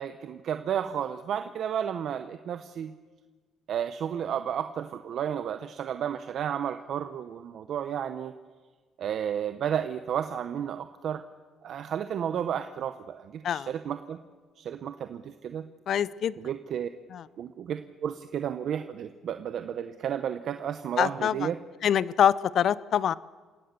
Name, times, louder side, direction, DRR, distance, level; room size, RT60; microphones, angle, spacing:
voice 1, 0.0-2.9 3.7-8.3 9.0-11.2 11.6-14.2 14.6-15.7 16.4-16.9 17.4-21.6, right 9 dB, 60° right, 9 dB, 0.9 m, -32 dB
voice 2, 15.9-16.3 17.1-17.2 21.0-21.5 21.8-23.1, left 9 dB, 55° left, 19 dB, 0.6 m, -25 dB
28.0 x 17.0 x 6.8 m, 1.4 s
cardioid pair, 125°, 0 cm